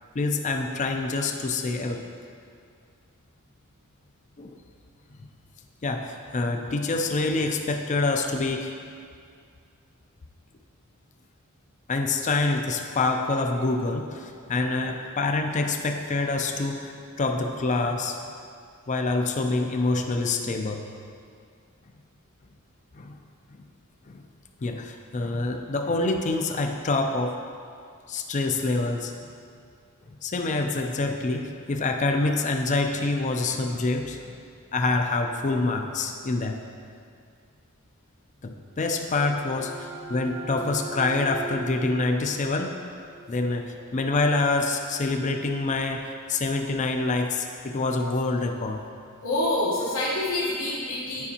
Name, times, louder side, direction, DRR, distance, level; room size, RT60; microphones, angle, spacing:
voice 1, 0.1-2.0 4.4-4.5 5.8-8.7 11.9-18.2 18.9-20.9 22.9-23.1 24.1-24.2 24.6-27.4 28.1-29.1 30.2-34.4 34.7-36.6 38.4-42.7 43.3-48.8, left 3 dB, 35° left, 4 dB, 0.4 m, -26 dB
sound 1, 38.6-44.1, right 3 dB, 70° right, 0.9 m, -41 dB
voice 2, 49.2-51.3, left 1 dB, 70° left, -8 dB, 1.1 m, -27 dB
9.5 x 5.2 x 2.8 m, 2.3 s
head